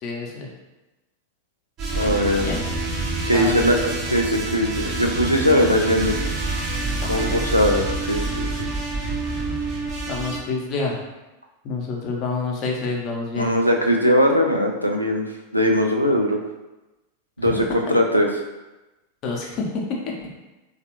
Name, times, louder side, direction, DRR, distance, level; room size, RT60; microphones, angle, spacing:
voice 1, 0.0-0.5 2.4-2.6 3.3-4.0 7.0-7.4 10.1-11.0 11.6-13.6 17.4-17.7 19.2-20.1, left 4 dB, 35° left, -1 dB, 0.6 m, -28 dB
sound 1, 1.8-10.4, right 2 dB, 30° right, 0.5 m, -27 dB
voice 2, 1.9-2.5 3.3-3.8 4.1-6.2 6.5-6.6 7.1-8.7 13.3-16.4 17.4-18.3, equal, 90° right, 1 dB, 0.4 m, -20 dB
3.2 x 2.3 x 2.9 m, 1.0 s
figure-of-eight pair, 90°, 0 cm